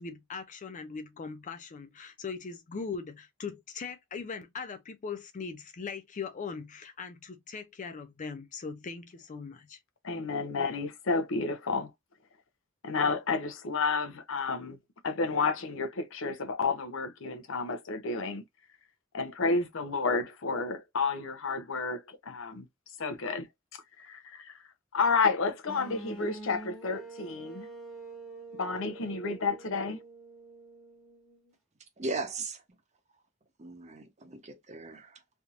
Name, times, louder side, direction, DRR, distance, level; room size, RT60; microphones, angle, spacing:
voice 1, 0.0-9.8, left 5 dB, 40° left, 0.4 m, -40 dB
voice 2, 10.0-11.9 12.8-14.8 15.0-18.4 19.1-22.7 23.0-23.4 23.7-24.6 24.9-27.7 28.6-30.0, left 4 dB, 70° left, 0.7 m, -31 dB
sound 1, 25.7-31.5, right 3 dB, ahead, 1.1 m, -46 dB
voice 3, 32.0-32.6 33.6-35.2, right 3 dB, 35° right, 0.9 m, -37 dB
3.4 x 2.7 x 2.4 m
head